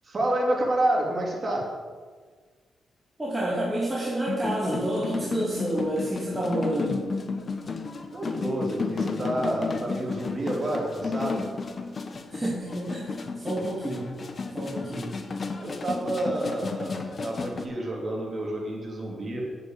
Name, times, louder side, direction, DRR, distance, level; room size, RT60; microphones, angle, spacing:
voice 1, 0.0-1.7 8.1-11.5 15.6-19.4, right 1 dB, 40° right, -2 dB, 3.6 m, -29 dB
voice 2, 3.2-7.1 12.3-14.2 14.5-15.2, right 1 dB, 15° right, -5 dB, 2.6 m, -29 dB
sound 1, 4.2-17.6, left 4 dB, 45° left, 1.0 m, -33 dB
8.2 x 6.8 x 8.0 m, 1.5 s
supercardioid pair, 60°, 0 cm